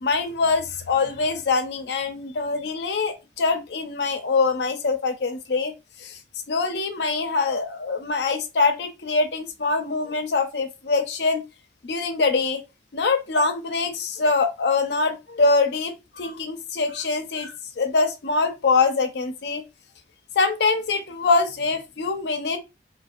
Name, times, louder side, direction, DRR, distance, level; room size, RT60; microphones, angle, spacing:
voice 1, 0.0-5.7 6.0-6.2 6.5-11.4 11.8-12.6 12.9-19.6 20.4-22.6, left 4 dB, 70° left, 0.5 m, -24 dB
2.5 x 2.0 x 2.4 m
head